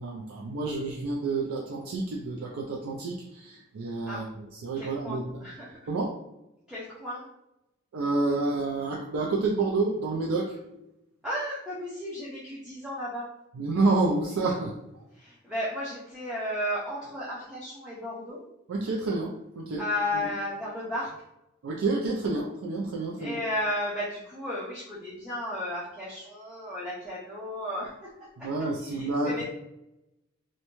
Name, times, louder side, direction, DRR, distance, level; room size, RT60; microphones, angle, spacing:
voice 1, 0.0-5.2 5.9-6.1 7.9-10.6 13.6-14.7 18.7-19.8 20.1-20.3 21.6-23.4 28.4-29.4, right 3 dB, 90° right, -2 dB, 0.4 m, -29 dB
voice 2, 4.8-5.8 6.7-7.3 11.2-13.3 15.1-18.4 19.8-21.1 23.2-29.4, left 1 dB, 5° right, -8 dB, 0.5 m, -34 dB
2.5 x 2.1 x 2.9 m, 0.88 s
head